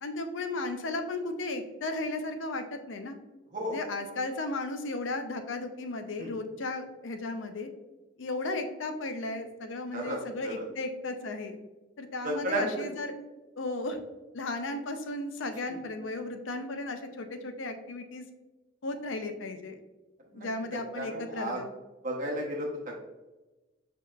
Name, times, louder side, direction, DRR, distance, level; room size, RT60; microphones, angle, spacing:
voice 1, 0.0-3.2 3.7-7.7 8.2-11.6 12.0-13.1 13.6-14.0 14.3-18.2 18.8-19.8 20.3-21.7, left 2 dB, 80° left, 7 dB, 0.6 m, -35 dB
voice 2, 12.2-12.7 15.7-15.8 20.3-20.5 20.7-21.6 22.0-23.0, right 1 dB, 40° right, -1 dB, 0.8 m, -33 dB
6.3 x 2.9 x 2.4 m, 1.1 s
head